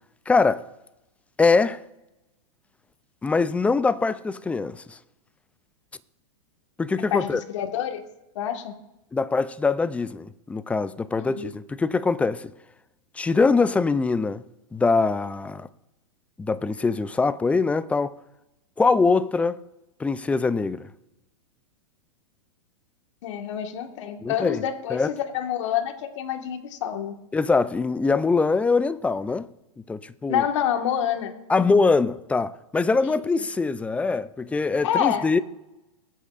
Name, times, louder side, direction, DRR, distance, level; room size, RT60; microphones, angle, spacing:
voice 1, 0.3-0.6 1.4-1.8 3.2-5.0 6.8-7.4 9.1-12.5 13.2-14.4 14.7-15.7 16.4-18.2 18.8-19.6 20.0-20.9 24.2-24.6 24.9-25.1 27.3-29.5 29.9-30.4 31.5-35.4, left 4 dB, 10° left, 0.3 m, -23 dB
voice 2, 7.1-8.0 8.3-8.7 11.2-11.5 23.2-27.2 30.3-31.3 33.0-33.2 34.8-35.3, left 9 dB, 65° left, 1.6 m, -27 dB
21.5 x 8.2 x 2.5 m
hypercardioid pair, 125°, 17 cm